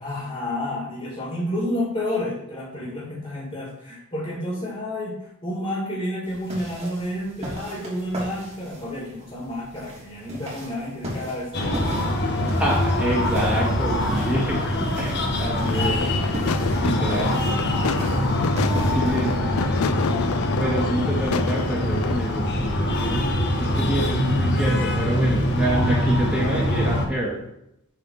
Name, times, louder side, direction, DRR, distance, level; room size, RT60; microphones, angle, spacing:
voice 1, 0.0-5.2 5.4-12.2 16.4-17.8 18.8-19.0, left 1 dB, 25° left, -6 dB, 2.4 m, -31 dB
sound 1, 6.3-19.4, equal, 30° right, 2.8 m, -37 dB
Breathing, 11.5-27.1, left 1 dB, 55° left, 1.1 m, -23 dB
voice 2, 12.6-14.6 15.0-16.1 16.8-17.6 18.6-19.7 20.1-20.3 20.6-27.4, right 1 dB, 5° right, -5 dB, 2.0 m, -27 dB
sound 2, 15.6-22.2, left 5 dB, 75° left, 0.4 m, -29 dB
7.6 x 4.2 x 5.7 m, 0.79 s
head